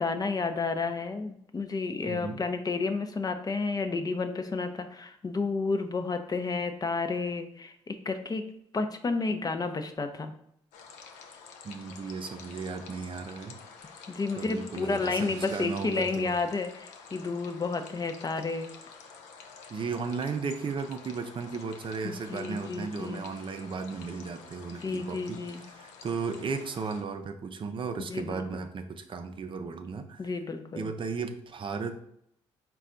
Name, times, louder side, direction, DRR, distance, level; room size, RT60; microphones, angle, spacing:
voice 1, 0.0-8.4 8.7-10.3 14.1-18.7 22.0-23.2 24.8-25.6 28.1-28.6 30.2-30.9, left 4 dB, 35° left, 7 dB, 0.5 m, -31 dB
voice 2, 2.1-2.4 11.6-13.6 14.4-16.3 19.7-30.2 30.7-32.0, right 5 dB, 45° right, 7 dB, 0.5 m, -35 dB
sound 1, 10.7-27.0, left 5 dB, 85° left, 0.4 m, -49 dB
4.2 x 2.3 x 3.7 m, 0.71 s
supercardioid pair, 55°, 12 cm